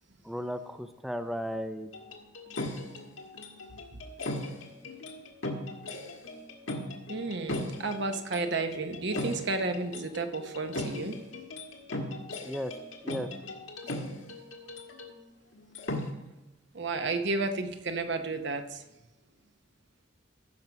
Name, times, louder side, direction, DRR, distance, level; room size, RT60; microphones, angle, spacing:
voice 1, 0.2-1.9 12.4-12.7 13.0-13.3, equal, ahead, 8 dB, 0.4 m, -35 dB
sound 1, 1.9-15.2 15.5-16.1, left 1 dB, 85° left, 1.6 m, -38 dB
voice 2, 7.1-11.2 16.7-18.8, right 3 dB, 60° right, 7 dB, 1.0 m, -32 dB
15.0 x 6.1 x 5.3 m, 1.0 s
head